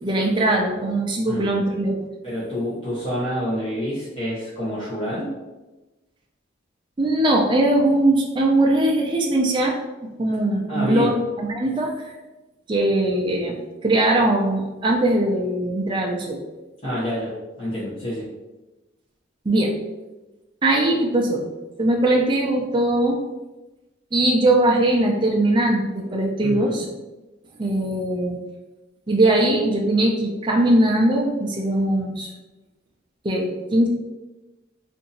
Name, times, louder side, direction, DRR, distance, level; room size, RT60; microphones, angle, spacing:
voice 1, 0.0-1.9 7.0-12.1 12.7-13.5 13.8-16.4 19.5-19.7 20.6-21.5 21.8-23.2 24.1-26.9 27.6-28.4 29.1-32.3 33.2-33.9, right 1 dB, 25° right, -1 dB, 0.4 m, -20 dB
voice 2, 2.2-5.3 10.7-11.1 16.8-18.3 26.4-26.9, equal, 30° left, -11 dB, 0.9 m, -27 dB
2.8 x 2.6 x 3.9 m, 1.1 s
head